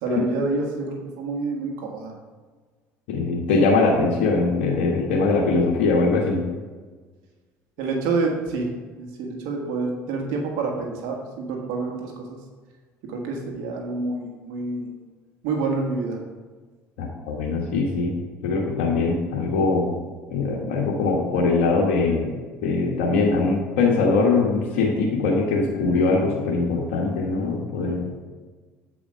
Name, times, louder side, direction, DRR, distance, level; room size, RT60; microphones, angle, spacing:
voice 1, 0.0-2.1 7.8-8.7 9.0-12.4 13.1-14.9 15.4-16.2, right 3 dB, 75° right, 1 dB, 1.5 m, -27 dB
voice 2, 3.1-6.4 17.0-18.1 18.4-19.9 20.3-22.3 22.6-28.1, left 3 dB, 80° left, -3 dB, 1.3 m, -22 dB
8.3 x 5.0 x 4.9 m, 1.4 s
supercardioid pair, 80°, 7 cm